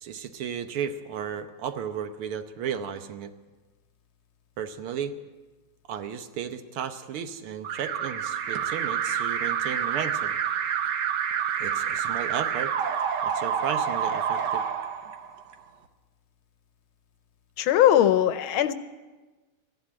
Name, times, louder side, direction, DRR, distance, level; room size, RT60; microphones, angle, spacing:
voice 1, 0.0-3.3 4.6-5.1 5.9-10.3 11.6-12.7 13.2-14.6, right 8 dB, 80° right, 9 dB, 1.8 m, -34 dB
Alarm, 7.6-15.5, right 8 dB, 60° right, 1.3 m, -28 dB
voice 2, 17.6-18.7, left 11 dB, 75° left, 12 dB, 1.5 m, -20 dB
14.5 x 11.0 x 8.7 m, 1.2 s
omnidirectional pair, 2.4 m